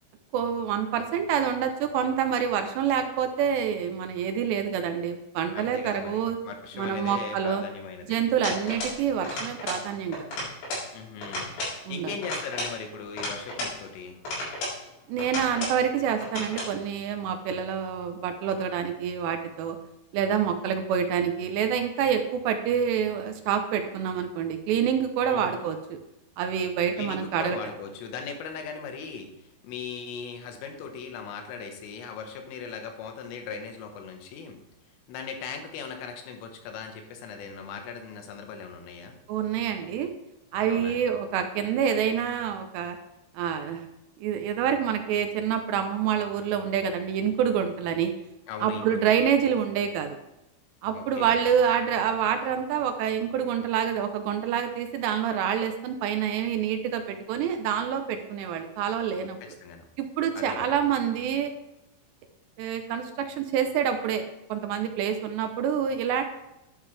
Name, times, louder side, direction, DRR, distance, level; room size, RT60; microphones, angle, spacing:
voice 1, 0.3-6.4 6.8-7.6 8.1-10.4 11.9-12.2 15.1-19.8 20.1-26.0 26.4-27.6 39.3-40.1 40.5-43.0 43.3-43.8 44.2-48.1 48.6-50.2 50.8-59.4 60.0-61.5 62.6-64.2 64.5-66.2, right 8 dB, 80° right, 7 dB, 2.5 m, -27 dB
voice 2, 5.5-8.2 10.9-11.6 11.9-14.2 25.3-25.6 27.0-29.3 29.6-34.6 35.1-39.2 40.7-41.0 48.5-49.1 50.9-51.3 59.4-59.9 60.4-60.8, left 6 dB, 90° left, 5 dB, 3.9 m, -38 dB
sound 1, 8.4-9.0 9.2-9.9 10.1-10.9 11.2-11.8 12.2-13.8 14.2-14.8 15.2-15.8 16.2-16.7, left 1 dB, 65° left, 6.1 m, -33 dB
10.0 x 10.0 x 3.3 m, 0.90 s
omnidirectional pair, 5.7 m